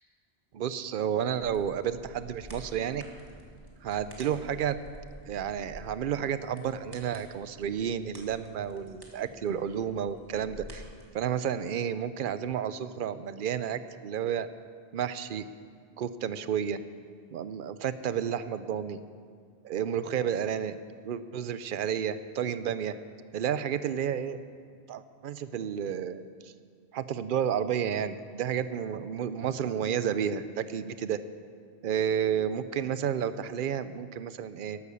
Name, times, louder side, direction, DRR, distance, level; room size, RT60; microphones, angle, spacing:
voice 1, 0.5-3.0 3.8-4.8 5.2-10.8 11.1-14.5 14.9-15.5 16.0-16.8 17.3-19.0 19.6-20.8 21.0-22.9 23.3-24.4 24.9-26.5 26.9-31.2 31.8-34.8, right 8 dB, 60° right, 13 dB, 0.7 m, -31 dB
sound 1, 1.4-11.0, equal, 20° right, 2.0 m, -50 dB
12.0 x 11.5 x 7.1 m, 2.1 s
omnidirectional pair, 1.1 m